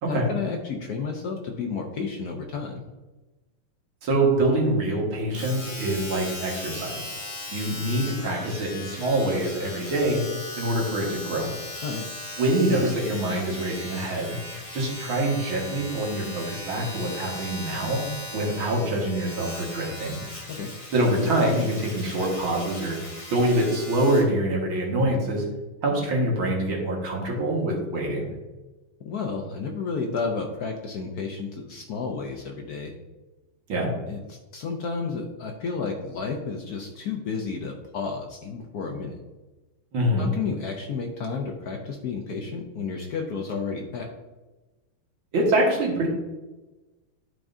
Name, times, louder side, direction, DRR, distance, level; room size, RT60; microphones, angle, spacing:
voice 1, 0.1-2.8 11.8-12.1 20.5-20.7 29.0-32.9 34.1-39.2 40.2-44.1, left 5 dB, 65° left, 2 dB, 1.0 m, -31 dB
voice 2, 4.0-7.1 7.5-10.2 10.6-11.5 12.4-14.4 14.7-18.1 18.3-20.2 20.9-23.0 23.3-25.5 25.8-28.3 33.7-33.9 39.9-40.3 45.3-46.1, right 1 dB, 80° right, -1 dB, 2.4 m, -25 dB
Domestic sounds home sounds, 5.3-24.3 25.0-25.1, left 1 dB, 30° left, 0.6 m, -38 dB
11.5 x 4.7 x 2.7 m, 1.2 s
omnidirectional pair, 2.2 m